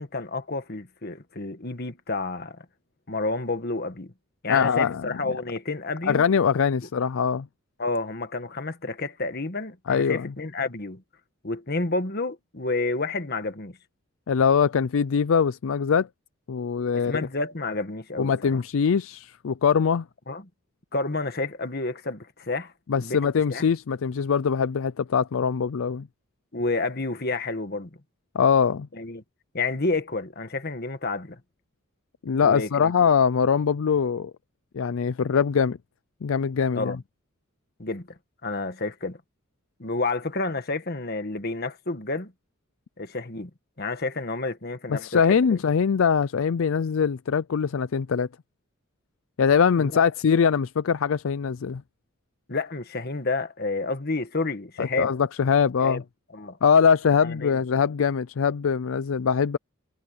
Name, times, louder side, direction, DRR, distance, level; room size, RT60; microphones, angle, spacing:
voice 1, 0.0-2.6 3.1-4.1 4.4-6.2 7.8-11.0 11.4-13.8 16.9-18.6 20.3-20.4 20.9-23.2 23.5-23.6 26.5-27.9 28.9-29.2 29.5-31.4 32.4-33.1 36.7-37.0 37.8-38.1 38.4-39.2 39.8-42.3 43.0-43.5 43.8-45.2 45.5-45.6 49.8-50.0 52.5-55.1 55.8-56.0 56.3-56.6 57.2-57.6, left 3 dB, 45° left, 1.6 m, -30 dB
voice 2, 4.5-5.1 6.0-7.5 9.9-10.3 14.3-16.1 16.5-17.3 18.2-20.1 22.9-26.1 28.3-28.9 32.2-34.3 34.7-35.8 36.2-37.0 44.9-48.3 49.4-51.8 54.8-56.0 56.6-59.6, left 6 dB, 70° left, 0.4 m, -22 dB
head